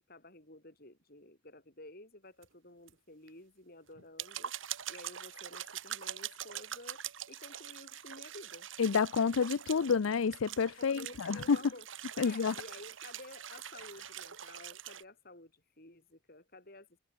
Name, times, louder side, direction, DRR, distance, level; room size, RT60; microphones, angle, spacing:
voice 1, 0.1-8.7 10.8-11.9 12.2-16.9, left 2 dB, 50° left, 6.2 m, -53 dB
sound 1, 2.4-2.5 2.9-3.0 3.3-3.4 3.9-15.0, right 10 dB, 75° right, 1.9 m, -44 dB
voice 2, 8.8-11.6 12.2-12.5, left 5 dB, 90° left, 0.5 m, -29 dB
head